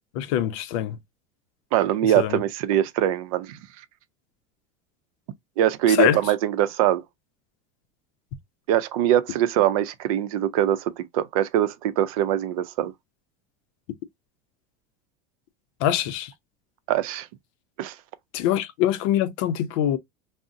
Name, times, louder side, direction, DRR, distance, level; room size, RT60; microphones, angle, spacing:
voice 1, 0.1-1.0 2.2-2.4 5.9-6.2 15.8-16.3 18.3-20.0, left 11 dB, 65° left, 0.5 m, -23 dB
voice 2, 1.7-3.6 5.6-7.0 8.7-12.9 16.9-17.3 17.8-18.0, right 11 dB, 85° right, 0.5 m, -22 dB
2.5 x 2.0 x 3.6 m
cardioid pair, 165°, 17 cm